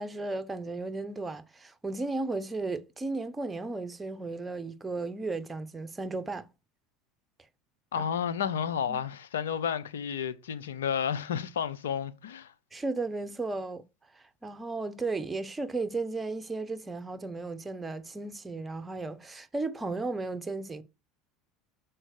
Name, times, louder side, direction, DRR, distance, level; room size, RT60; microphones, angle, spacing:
voice 1, 0.0-6.5 8.0-8.1 8.9-9.0 12.7-13.8 14.1-20.8, right 3 dB, 15° right, 0.9 m, -35 dB
voice 2, 7.9-12.5, left 8 dB, 85° left, 0.7 m, -31 dB
6.2 x 4.5 x 6.5 m
hypercardioid pair, 80°, 0 cm